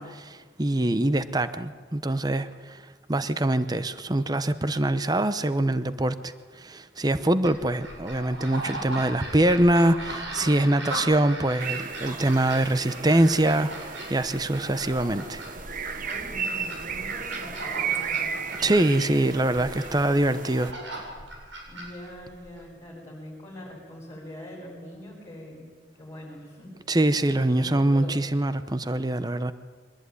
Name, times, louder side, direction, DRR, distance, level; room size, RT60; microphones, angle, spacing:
voice 1, 0.0-2.8 3.1-13.7 14.1-15.4 18.6-20.7 26.9-29.5, right 1 dB, 20° right, 12 dB, 0.8 m, -24 dB
sound 1, 7.4-22.6, right 1 dB, 80° right, 7.9 m, -38 dB
sound 2, 11.6-20.7, right 6 dB, 45° right, 1.1 m, -34 dB
voice 2, 16.0-18.3 19.2-19.5 21.7-25.7 26.0-26.7 27.5-28.2, left 1 dB, 15° left, -7 dB, 7.8 m, -43 dB
23.5 x 20.0 x 9.6 m, 1.5 s
head